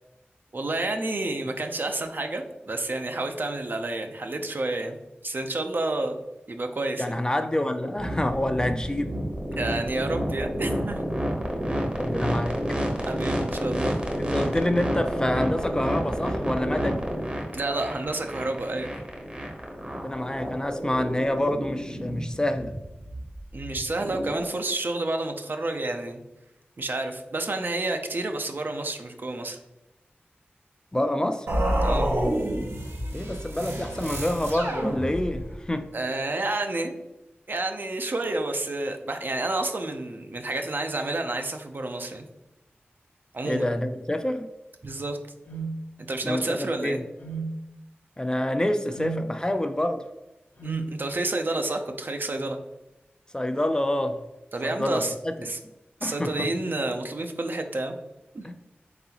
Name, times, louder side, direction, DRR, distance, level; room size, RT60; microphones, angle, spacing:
voice 1, 0.5-5.0 5.2-6.2 6.5-7.2 9.6-11.0 13.0-14.0 17.5-18.9 23.5-26.2 26.8-29.6 31.8-32.1 35.9-36.9 37.5-42.3 43.3-43.7 44.8-45.2 46.0-47.0 50.6-52.6 54.5-55.1 55.4-55.6 56.0-58.0 58.3-58.5, right 2 dB, 55° right, 5 dB, 0.5 m, -29 dB
voice 2, 7.0-9.1 9.5-9.6 12.0-12.6 14.2-17.0 19.9-22.7 30.9-31.5 33.1-35.9 43.4-44.5 46.2-47.0 48.2-50.0 53.3-54.2 54.6-55.3 56.0-56.5 58.4-58.5, left 1 dB, 20° left, 7 dB, 0.4 m, -27 dB
sound 1, 8.0-24.5, equal, 25° right, 0.8 m, -30 dB
sound 2, 31.5-35.6, right 1 dB, 85° right, 0.8 m, -28 dB
sound 3, 45.5-45.7 47.2-47.5 48.9-49.2 50.6-50.9, right 5 dB, 50° left, 0.7 m, -32 dB
3.9 x 3.7 x 2.8 m, 0.97 s
wide cardioid pair, 65°, 4 cm